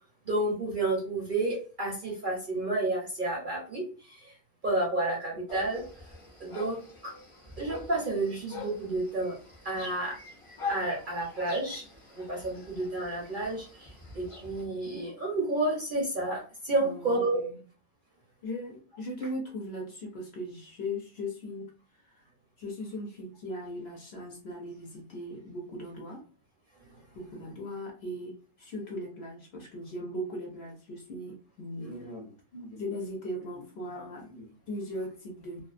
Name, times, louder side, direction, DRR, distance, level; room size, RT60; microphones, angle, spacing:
voice 1, 0.2-4.3 4.6-5.8 6.4-7.1 7.6-9.3 9.6-10.2 10.7-11.8 12.2-17.4, right 2 dB, 50° right, -3 dB, 0.7 m, -30 dB
sound 1, 5.5-14.7, left 3 dB, 30° left, 0.6 m, -43 dB
voice 2, 16.8-17.6 18.4-21.7 22.0-22.3 22.6-26.2 27.1-35.6, left 1 dB, 60° left, -1 dB, 0.8 m, -39 dB
2.5 x 2.3 x 2.4 m, 0.37 s
omnidirectional pair, 1.5 m